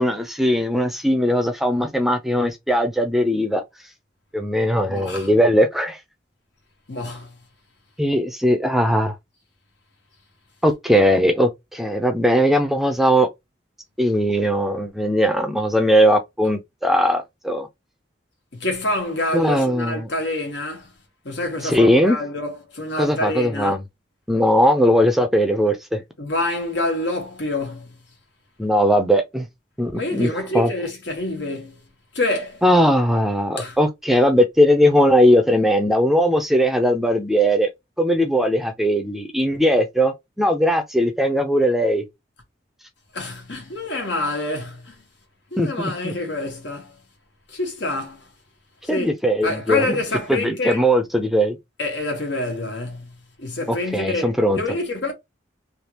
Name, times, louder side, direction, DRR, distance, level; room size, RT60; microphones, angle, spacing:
voice 1, 0.0-3.6 4.3-6.0 8.0-9.2 10.6-13.3 14.0-17.7 19.3-20.1 21.6-22.2 23.0-23.8 24.3-26.0 28.6-29.5 29.8-30.3 30.5-30.7 32.6-37.7 38.0-42.0 45.6-46.1 48.9-50.0 50.3-51.6 53.7-54.6, equal, ahead, 0.5 m, -19 dB
voice 2, 4.9-5.3 6.9-7.3 18.5-20.9 21.2-23.8 26.2-27.9 29.9-31.8 32.1-32.6 33.6-33.8 43.1-44.9 45.5-46.9 47.5-48.3 48.9-49.2 49.4-50.8 51.8-53.1 53.4-55.1, left 2 dB, 75° left, 1.5 m, -27 dB
3.4 x 2.8 x 2.8 m
head